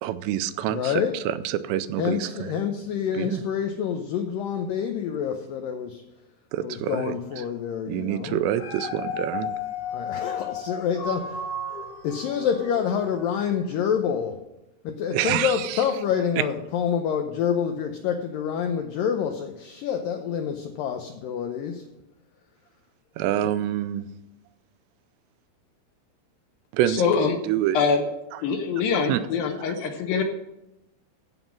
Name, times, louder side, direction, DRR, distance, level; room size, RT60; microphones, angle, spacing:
voice 1, 0.0-2.5 3.1-3.4 6.5-7.1 7.9-9.6 15.1-15.8 16.4-16.5 23.2-24.1 26.7-27.0 27.5-27.8 29.1-29.2, right 12 dB, 90° right, 12 dB, 2.9 m, -26 dB
voice 2, 0.7-1.2 2.0-6.0 6.6-8.4 9.9-11.4 12.0-14.4 14.8-21.9, left 8 dB, 90° left, 5 dB, 1.9 m, -27 dB
Dog, 8.3-13.7 14.2-14.3, left 4 dB, 50° left, 1.9 m, -34 dB
voice 3, 26.9-27.4 27.7-28.0 28.4-30.2, left 5 dB, 70° left, 5 dB, 2.3 m, -24 dB
15.5 x 5.5 x 6.0 m, 0.91 s
omnidirectional pair, 4.9 m